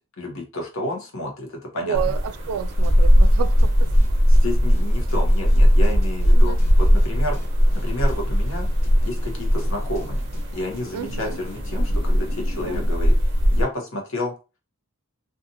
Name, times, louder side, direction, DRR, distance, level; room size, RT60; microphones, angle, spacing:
voice 1, 0.2-2.0 4.3-7.4 7.7-8.7 9.0-10.2 10.5-13.1 13.5-14.3, left 1 dB, 60° left, 0.9 m, -30 dB
voice 2, 1.8-3.9 6.4-6.6 10.9-11.4 12.6-12.8, right 8 dB, 80° right, 0.3 m, -30 dB
sound 1, 1.9-13.6, equal, 60° right, 0.7 m, -19 dB
sound 2, 2.8-2.9 3.2-4.1 4.3-4.4 4.7-7.1 7.3-11.8, left 2 dB, 30° left, 0.8 m, -47 dB
sound 3, 7.0-13.0, left 3 dB, 85° left, 0.4 m, -43 dB
2.7 x 2.4 x 2.6 m
head